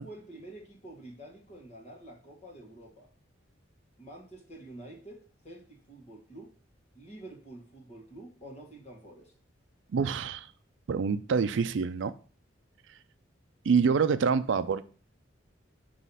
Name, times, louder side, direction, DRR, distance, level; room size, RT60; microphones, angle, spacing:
voice 1, 0.0-3.1 4.0-6.5 6.9-9.3, right 1 dB, 35° left, 1.5 m, -48 dB
voice 2, 9.9-10.5 10.9-12.1 13.7-15.1, right 5 dB, 70° right, 0.4 m, -26 dB
5.7 x 3.1 x 5.5 m
head